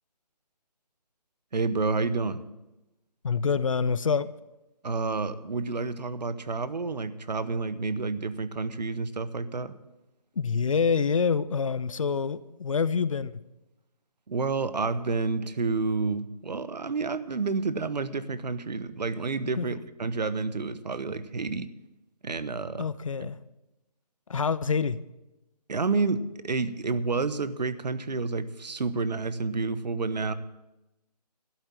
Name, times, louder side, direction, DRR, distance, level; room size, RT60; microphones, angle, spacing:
voice 1, 1.5-2.4 4.8-9.7 14.3-21.7 22.2-22.9 23.2-23.3 25.7-30.3, right 4 dB, 80° right, 14 dB, 1.0 m, -29 dB
voice 2, 3.2-4.3 10.4-13.4 19.6-19.7 22.8-23.4 24.3-25.0, left 5 dB, 50° left, 16 dB, 0.6 m, -26 dB
12.5 x 8.3 x 7.4 m, 0.98 s
hypercardioid pair, 170°, 21 cm